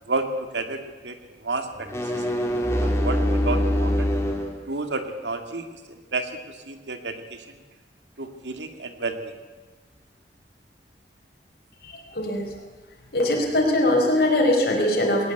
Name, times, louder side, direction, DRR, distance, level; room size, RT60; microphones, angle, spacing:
voice 1, 0.1-1.1 1.4-1.9 2.1-4.1 4.7-5.8 6.1-7.6 8.2-9.3, right 3 dB, 85° right, 6 dB, 2.4 m, -31 dB
sound 1, 1.7-4.5, equal, 15° left, 2.9 m, -23 dB
voice 2, 11.8-12.5 13.1-15.3, left 1 dB, 60° left, 0 dB, 4.4 m, -22 dB
19.5 x 19.0 x 8.1 m, 1.3 s
head